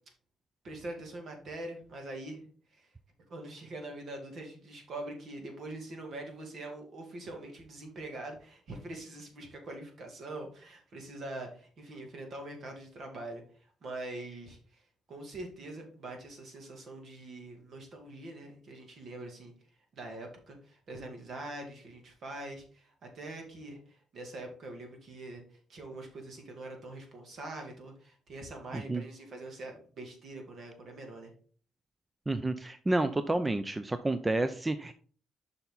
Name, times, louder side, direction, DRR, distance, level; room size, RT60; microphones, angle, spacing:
voice 1, 0.6-2.4 2.7-2.9 3.3-13.4 13.8-14.8 15.1-19.5 19.9-25.4 25.7-31.3, right 2 dB, 60° right, 3 dB, 2.5 m, -43 dB
voice 2, 32.3-34.9, right 2 dB, 20° right, 11 dB, 0.5 m, -30 dB
7.0 x 5.6 x 4.0 m, 0.43 s
cardioid pair, 90°, 0 cm